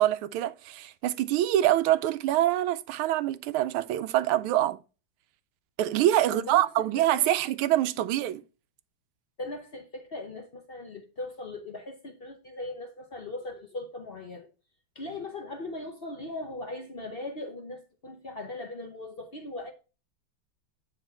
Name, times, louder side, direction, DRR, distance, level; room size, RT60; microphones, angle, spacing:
voice 1, 0.0-4.8 5.8-8.4, right 13 dB, 85° right, 1.4 m, -25 dB
voice 2, 6.2-6.9 7.2-7.4 9.4-14.5 14.9-19.7, left 2 dB, 50° left, 0.7 m, -39 dB
9.0 x 4.3 x 4.3 m
omnidirectional pair, 2.3 m